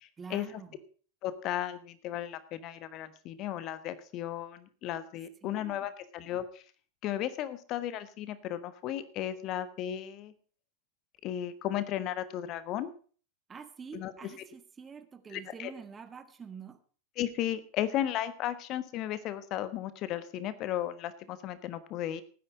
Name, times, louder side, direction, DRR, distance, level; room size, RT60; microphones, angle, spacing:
voice 1, 0.2-0.8 5.4-5.9 13.5-16.8, right 6 dB, 20° right, 10 dB, 1.6 m, -46 dB
voice 2, 1.2-6.6 7.0-10.3 11.2-12.9 13.9-14.3 15.3-15.7 17.2-22.2, left 11 dB, 35° left, 14 dB, 1.2 m, -35 dB
18.0 x 10.0 x 4.9 m, 0.41 s
figure-of-eight pair, 90°, 0 cm